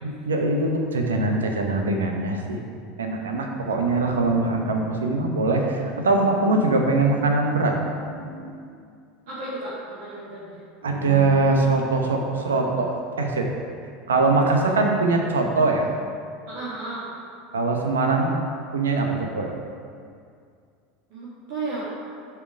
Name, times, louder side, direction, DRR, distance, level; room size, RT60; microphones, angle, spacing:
voice 1, 0.0-2.6 3.0-8.6 10.8-13.5 14.1-15.9 17.5-18.3 18.7-19.5, right 3 dB, 85° right, 2 dB, 0.8 m, -22 dB
voice 2, 9.3-10.6 16.5-17.0 21.1-21.8, right 2 dB, 65° right, -9 dB, 1.7 m, -33 dB
7.0 x 4.7 x 4.9 m, 2.3 s
hypercardioid pair, 80°, 0 cm